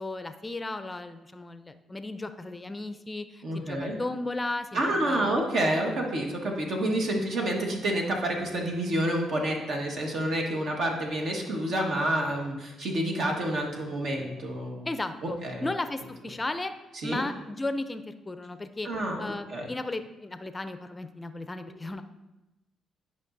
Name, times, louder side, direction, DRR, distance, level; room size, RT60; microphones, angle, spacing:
voice 1, 0.0-5.4 14.9-15.4 15.6-16.7 17.0-18.9 19.2-22.0, left 2 dB, 20° left, 10 dB, 0.5 m, -35 dB
voice 2, 3.4-4.0 4.7-14.9 15.2-15.7 16.9-17.2 18.8-19.2 19.5-19.7, right 1 dB, 65° right, 0 dB, 1.4 m, -28 dB
11.0 x 5.3 x 2.6 m, 1.0 s
cardioid pair, 90°, 0 cm